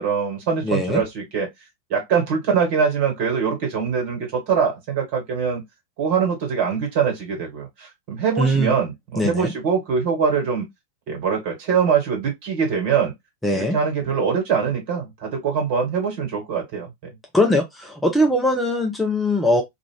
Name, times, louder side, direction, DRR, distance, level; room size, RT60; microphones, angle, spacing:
voice 1, 0.0-1.5 1.9-5.6 6.0-10.6 11.1-13.1 13.5-16.9, right 6 dB, 45° right, 1.5 m, -23 dB
voice 2, 0.6-1.0 8.4-8.7 9.2-9.5 13.4-13.8 17.3-19.6, left 1 dB, 5° left, 0.5 m, -20 dB
2.4 x 2.4 x 3.2 m
figure-of-eight pair, 90°, 0 cm